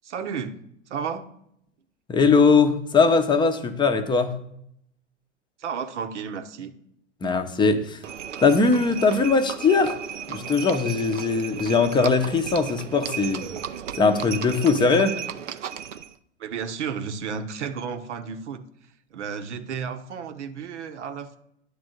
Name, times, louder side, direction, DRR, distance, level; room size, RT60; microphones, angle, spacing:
voice 1, 0.0-0.5 0.9-1.3 5.6-6.7 16.4-21.4, right 6 dB, 70° right, 9 dB, 0.9 m, -33 dB
voice 2, 2.1-4.4 7.2-8.0 8.4-10.0 10.3-13.5 14.0-15.2, left 4 dB, 15° left, 8 dB, 0.7 m, -20 dB
Livestock farm animals working animals, 8.0-16.1, right 9 dB, 85° right, 0.5 m, -35 dB
9.5 x 3.4 x 6.5 m, 0.74 s
hypercardioid pair, 100°, 36 cm